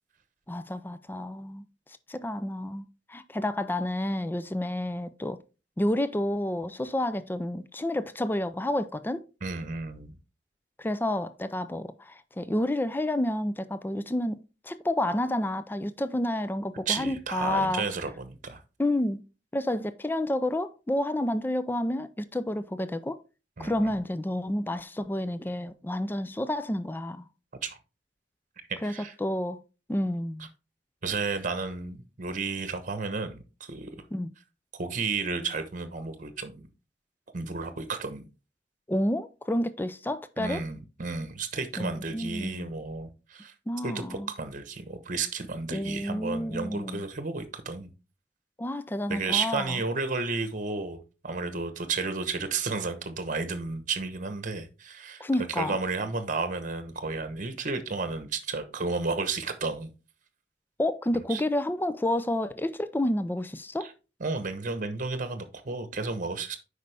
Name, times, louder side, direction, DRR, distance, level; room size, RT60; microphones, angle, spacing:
voice 1, 0.5-1.6 2.1-2.8 3.1-5.4 5.8-9.2 10.8-17.8 18.8-19.2 19.5-23.2 23.6-27.3 28.8-28.9 29.2-29.6 29.9-30.5 34.1-34.3 38.9-40.6 41.8-42.7 43.7-44.3 45.7-47.0 48.6-49.8 55.2-55.8 60.8-63.9, left 1 dB, 10° left, 0.4 m, -30 dB
voice 2, 9.4-10.2 16.9-18.6 23.6-23.9 27.6-27.8 28.8-29.1 30.4-30.5 31.0-33.9 34.7-36.7 37.3-38.3 40.4-43.5 43.8-47.9 49.1-55.2 55.5-59.9 61.1-61.4 63.8-63.9 64.2-66.6, right 4 dB, 45° right, 1.0 m, -32 dB
8.2 x 5.3 x 3.4 m
head